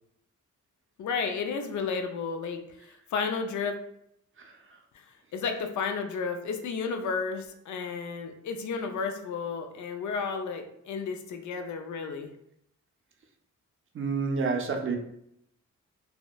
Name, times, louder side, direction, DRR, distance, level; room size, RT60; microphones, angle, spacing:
voice 1, 1.0-3.8 5.1-12.3, left 5 dB, 70° left, 5 dB, 0.4 m, -32 dB
voice 2, 4.4-4.8 13.9-15.0, right 4 dB, 40° right, 3 dB, 0.5 m, -29 dB
2.8 x 2.0 x 2.2 m, 0.76 s
cardioid pair, 65°, 31 cm